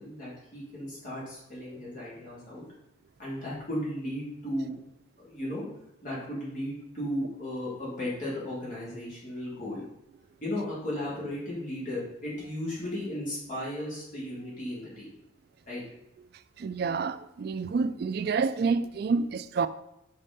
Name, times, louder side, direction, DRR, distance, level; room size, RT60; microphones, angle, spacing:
voice 1, 0.0-2.7 3.2-4.7 5.2-5.7 6.0-9.8 10.4-15.1 15.7-15.8, left 1 dB, 40° left, 3.0 m, -35 dB
voice 2, 16.6-19.7, right 4 dB, 50° right, 0.3 m, -28 dB
5.5 x 5.3 x 5.3 m
head